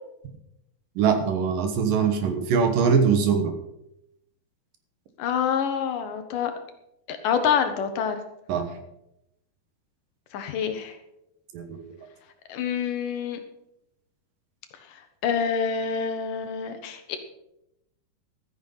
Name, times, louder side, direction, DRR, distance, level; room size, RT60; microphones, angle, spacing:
voice 1, 1.0-3.6 8.5-8.7 11.5-11.8, right 6 dB, 70° right, 7 dB, 2.9 m, -22 dB
voice 2, 5.2-6.5 7.1-8.2 10.3-11.0 12.5-13.4 15.2-17.2, left 7 dB, 70° left, 8 dB, 2.5 m, -26 dB
13.5 x 9.4 x 5.7 m, 0.83 s
omnidirectional pair, 4.3 m